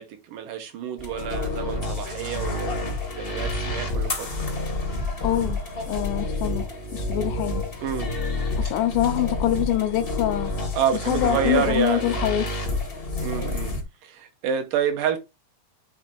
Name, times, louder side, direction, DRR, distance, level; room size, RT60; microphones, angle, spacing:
voice 1, 0.0-2.9 3.2-4.3 7.8-8.2 10.8-12.1 13.2-13.7 14.0-15.2, right 8 dB, 75° right, 2.7 m, -28 dB
sound 1, 1.0-13.8, left 2 dB, 45° left, 0.7 m, -29 dB
voice 2, 5.2-5.6 5.9-7.7 8.6-10.5 11.1-12.6, left 12 dB, 80° left, 2.1 m, -25 dB
7.9 x 2.9 x 5.3 m
omnidirectional pair, 4.0 m